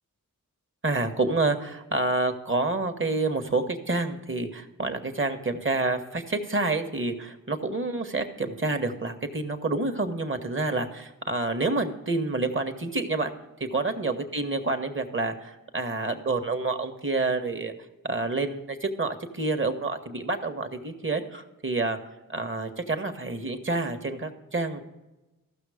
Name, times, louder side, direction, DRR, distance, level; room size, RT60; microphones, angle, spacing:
voice 1, 0.8-13.3 13.6-17.7 18.0-22.0 22.3-24.9, right 3 dB, 35° right, 7 dB, 1.4 m, -28 dB
14.5 x 6.2 x 5.0 m, 1.0 s
cardioid pair, 45°, 34 cm